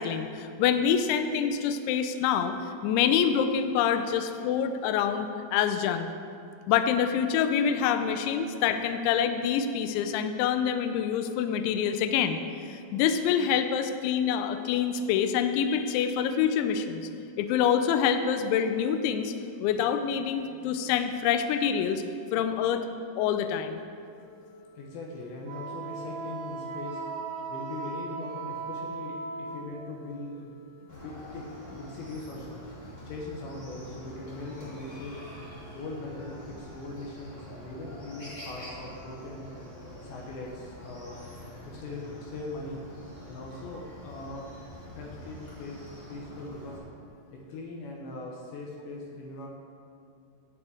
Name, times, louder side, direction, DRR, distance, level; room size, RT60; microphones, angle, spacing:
voice 1, 0.0-2.6 2.8-6.1 6.7-12.4 12.7-17.1 17.4-19.3 19.6-22.0 22.3-22.9 23.2-23.8, left 8 dB, 90° left, 8 dB, 2.7 m, -26 dB
sound 1, 24.1-35.6, right 3 dB, 65° right, 2.3 m, -55 dB
voice 2, 24.7-27.0 27.5-32.5 33.1-35.1 35.7-39.7 40.0-41.2 41.7-42.8 43.3-44.5 44.9-46.8 47.3-49.5, left 2 dB, 70° left, -2 dB, 2.9 m, -40 dB
Wind instrument woodwind instrument, 25.5-29.9, right 4 dB, 85° right, 4.1 m, -37 dB
Chicken rooster, 30.9-46.8, left 1 dB, 30° left, 1.0 m, -45 dB
11.0 x 5.4 x 8.3 m, 2.4 s
omnidirectional pair, 5.9 m